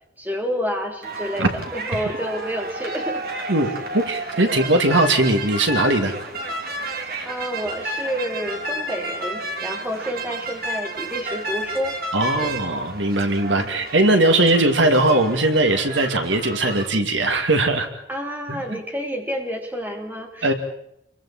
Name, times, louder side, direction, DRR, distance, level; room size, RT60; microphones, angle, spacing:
voice 1, 0.2-3.2 3.6-3.8 7.3-12.0 12.4-12.5 13.5-13.8 18.1-20.5, equal, 10° right, 2 dB, 3.4 m, -29 dB
sound 1, 1.0-16.9, right 1 dB, 50° right, 3.0 m, -31 dB
voice 2, 3.9-6.2 12.1-17.9 18.5-18.8 20.4-20.5, right 2 dB, 80° right, 5 dB, 2.8 m, -19 dB
29.0 x 23.5 x 4.4 m, 0.75 s
head